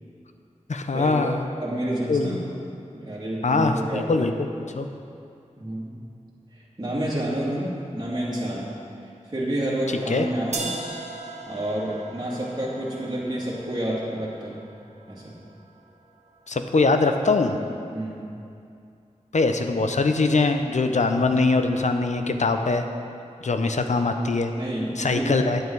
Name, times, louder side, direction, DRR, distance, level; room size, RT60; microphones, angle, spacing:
voice 1, 0.7-1.4 2.1-2.4 3.4-4.5 4.7-4.9 10.1-10.3 16.5-17.6 19.3-22.8 23.4-24.5 25.0-25.6, left 3 dB, 65° left, 6 dB, 0.7 m, -22 dB
voice 2, 1.6-2.5 2.9-4.3 5.6-6.0 6.5-8.8 9.0-10.7 11.5-14.7 15.1-15.3 17.9-18.3 24.6-25.5, right 1 dB, 30° right, -7 dB, 2.3 m, -29 dB
sound 1, 10.5-16.5, right 3 dB, 60° right, 1.0 m, -39 dB
9.5 x 9.1 x 4.7 m, 2.5 s
wide cardioid pair, 55°, 13 cm